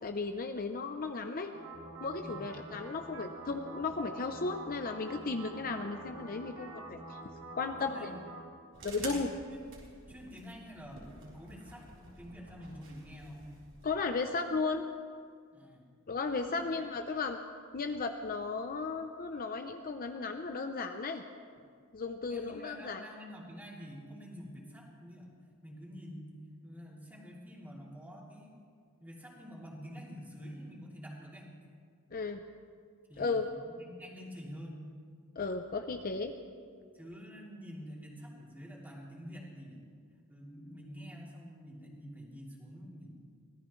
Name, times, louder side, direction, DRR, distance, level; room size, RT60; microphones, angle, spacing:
voice 1, 0.0-1.5 2.0-7.2 7.6-8.1 8.8-9.3 13.8-14.9 16.1-17.4 17.7-21.2 21.9-23.0 32.1-32.4 33.2-33.5 35.4-36.3, left 4 dB, 40° left, 6 dB, 0.6 m, -35 dB
sound 1, 1.5-8.4, right 2 dB, 85° right, 3.1 m, -47 dB
voice 2, 2.2-2.7 7.5-8.1 8.9-9.2 9.5-9.6 10.1-13.5 15.5-15.9 16.5-16.7 22.2-25.3 25.6-26.3 26.6-28.5 29.0-31.5 33.1-34.9 36.9-39.9 40.3-43.2, equal, 10° right, -4 dB, 3.1 m, -48 dB
sound 2, 8.7-13.9, right 3 dB, 60° right, 4.1 m, -49 dB
24.5 x 17.0 x 3.2 m, 2.1 s
head